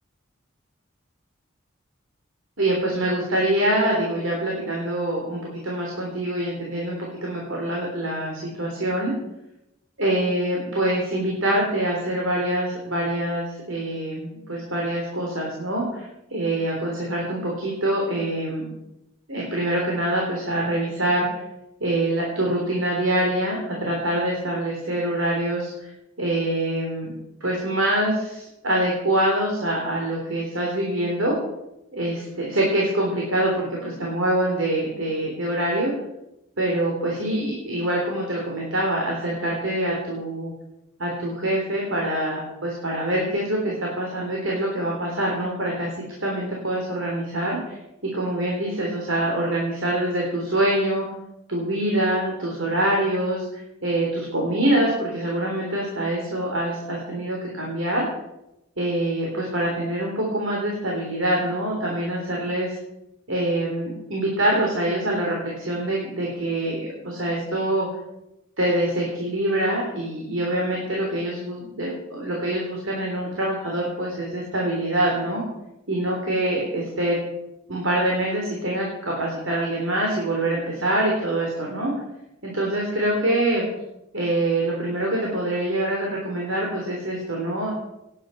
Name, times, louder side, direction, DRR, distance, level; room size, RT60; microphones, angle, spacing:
voice 1, 2.6-9.1 10.0-16.0 16.3-18.6 19.3-21.4 21.8-25.9 26.2-27.1 27.4-31.3 31.9-35.9 36.6-40.5 41.0-45.9 46.2-47.8 48.1-51.1 51.5-53.5 53.8-58.1 58.8-62.8 63.3-67.9 68.6-75.4 75.9-77.2 77.7-81.9 82.4-83.7 84.1-87.7, right 1 dB, 80° right, -2 dB, 3.7 m, -25 dB
17.5 x 10.0 x 5.8 m, 0.91 s
head